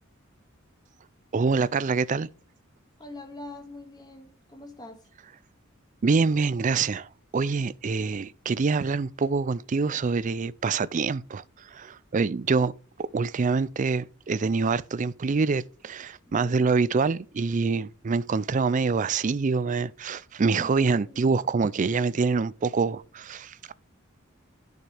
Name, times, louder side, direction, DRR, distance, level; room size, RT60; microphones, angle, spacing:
voice 1, 1.3-2.3 6.0-12.7 13.0-23.7, right 4 dB, 35° right, 0.4 m, -25 dB
voice 2, 3.0-5.1 16.2-16.8 20.6-20.7 21.0-21.2, left 2 dB, 20° left, 2.0 m, -44 dB
11.0 x 6.6 x 3.4 m
head